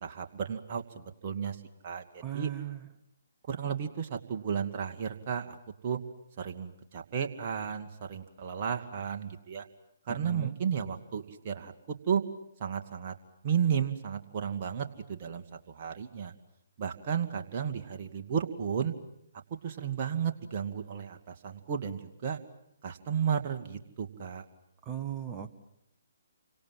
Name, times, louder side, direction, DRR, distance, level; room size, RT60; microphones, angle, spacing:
voice 1, 0.0-1.6 1.8-2.5 3.5-5.6 5.8-6.0 6.4-9.7 10.1-12.2 12.6-13.1 13.4-16.3 16.8-18.9 19.6-22.4 22.8-24.4, right 7 dB, 35° right, 4 dB, 2.4 m, -33 dB
voice 2, 2.2-2.9 10.1-10.6 24.8-25.5, right 10 dB, 20° right, 5 dB, 1.8 m, -37 dB
30.0 x 25.0 x 7.6 m, 0.78 s
figure-of-eight pair, 130°, 0 cm